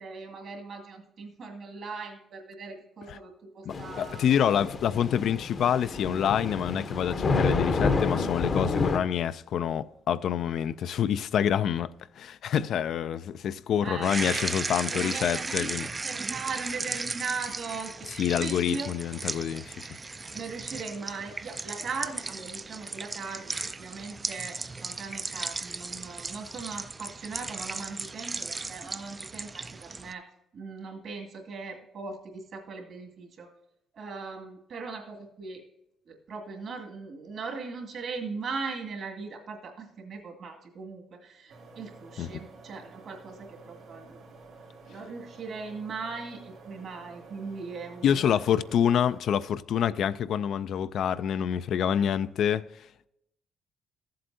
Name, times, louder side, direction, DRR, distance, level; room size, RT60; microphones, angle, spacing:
voice 1, 0.0-4.2 13.8-14.5 14.9-17.9 18.4-18.9 20.3-23.5 23.8-30.2 30.5-33.5 33.9-35.6 36.1-44.2 44.9-48.4, right 4 dB, 65° right, 2.1 m, -39 dB
voice 2, 3.7-11.9 12.2-15.9 18.1-19.9 42.2-42.4 48.0-52.6, left 9 dB, 70° left, 0.3 m, -27 dB
Thunder / Rain, 3.7-9.0, left 4 dB, 45° left, 0.7 m, -29 dB
sound 1, 14.0-30.1, right 3 dB, 25° right, 0.3 m, -36 dB
sound 2, 41.5-49.2, right 3 dB, 85° right, 1.8 m, -50 dB
14.0 x 7.7 x 2.7 m
cardioid pair, 90°, 0 cm